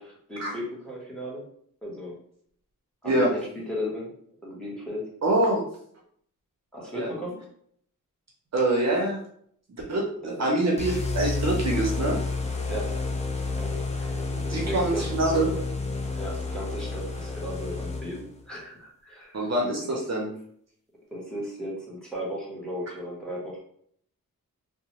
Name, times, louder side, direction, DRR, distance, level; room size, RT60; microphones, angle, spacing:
voice 1, 0.0-1.4 1.8-2.2 3.0-4.1 4.4-5.1 6.7-7.5 10.2-10.5 12.7-13.0 13.6-15.1 16.1-19.4 19.8-20.0 21.1-23.6, equal, ahead, -4 dB, 0.8 m, -36 dB
voice 2, 5.2-5.6 6.9-7.1 8.5-9.2 9.9-10.0 10.4-12.2 14.5-15.5 19.3-20.3, right 1 dB, 50° right, -1 dB, 0.6 m, -24 dB
sound 1, 10.8-18.4, left 3 dB, 20° left, 0.3 m, -30 dB
2.8 x 2.0 x 2.9 m, 0.64 s
wide cardioid pair, 120°, 33 cm